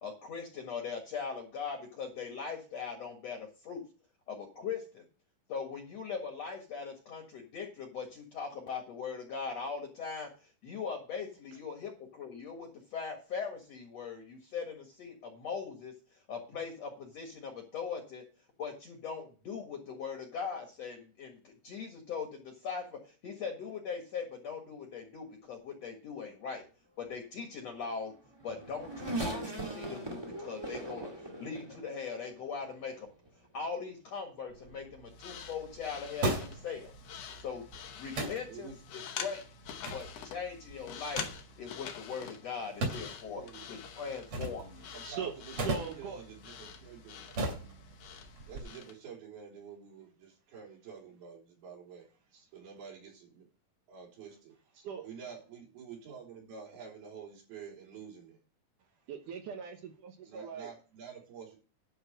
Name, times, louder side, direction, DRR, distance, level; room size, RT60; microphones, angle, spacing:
voice 1, 0.0-3.9 4.3-5.0 5.5-18.2 18.6-26.6 27.0-28.1 28.4-31.1 31.4-33.1 33.5-36.9 37.4-37.7 37.9-39.4 39.9-41.3 41.6-43.4 43.7-44.9, left 5 dB, 55° left, 3 dB, 2.3 m, -40 dB
Race car auto racing / Accelerating revving vroom, 28.0-32.6 33.3-33.4 34.5-34.7, right 1 dB, 15° right, 1.0 m, -40 dB
sound 1, 34.5-48.6, right 2 dB, 40° right, 3.2 m, -40 dB
sound 2, 35.1-49.0, left 8 dB, 75° left, 1.5 m, -46 dB
voice 2, 43.3-43.7 44.9-45.5 45.8-47.5 48.5-52.1 52.5-53.5 53.9-54.6 55.0-58.4 60.3-61.6, right 6 dB, 85° right, 0 dB, 5.4 m, -48 dB
voice 3, 44.8-46.2 52.3-52.5 54.7-55.1 59.1-60.7, right 7 dB, 65° right, 4 dB, 2.5 m, -41 dB
11.5 x 4.5 x 7.8 m, 0.35 s
omnidirectional pair, 4.3 m